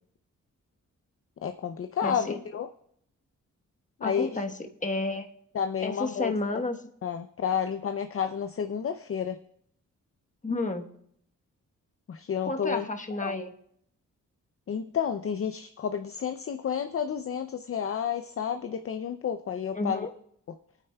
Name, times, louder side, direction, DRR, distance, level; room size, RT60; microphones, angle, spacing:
voice 1, 1.4-2.7 4.0-4.3 5.5-6.3 7.0-9.4 12.1-12.8 13.2-13.4 14.7-20.1, left 7 dB, 45° left, 8 dB, 0.5 m, -30 dB
voice 2, 2.0-2.4 4.0-5.3 5.8-6.8 10.4-10.8 12.4-13.5 19.7-20.1, left 2 dB, 25° left, 4 dB, 1.1 m, -31 dB
22.5 x 9.3 x 2.3 m, 0.70 s
cardioid pair, 80°, 31 cm